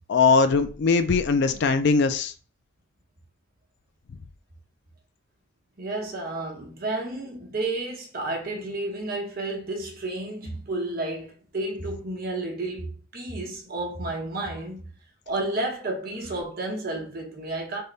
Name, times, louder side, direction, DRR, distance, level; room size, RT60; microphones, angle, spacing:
voice 1, 0.1-2.3, left 4 dB, 55° left, 0.4 m, -20 dB
voice 2, 5.8-14.8 15.3-17.8, right 2 dB, 45° right, 1.0 m, -31 dB
3.5 x 2.2 x 3.8 m
head